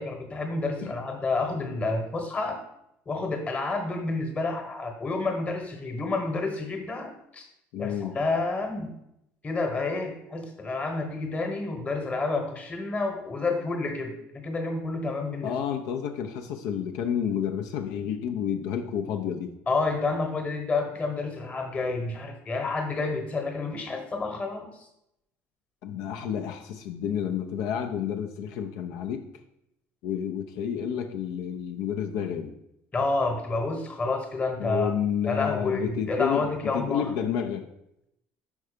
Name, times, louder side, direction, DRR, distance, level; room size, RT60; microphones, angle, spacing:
voice 1, 0.0-2.6 3.1-7.5 7.8-8.9 9.4-15.6 19.7-24.7 32.9-34.9 35.2-37.1, left 3 dB, 25° left, 4 dB, 1.1 m, -29 dB
voice 2, 7.7-8.2 15.4-19.5 25.8-29.2 30.0-32.5 34.6-37.7, left 8 dB, 80° left, 4 dB, 0.6 m, -30 dB
5.4 x 4.7 x 5.0 m, 0.80 s
cardioid pair, 145°, 6 cm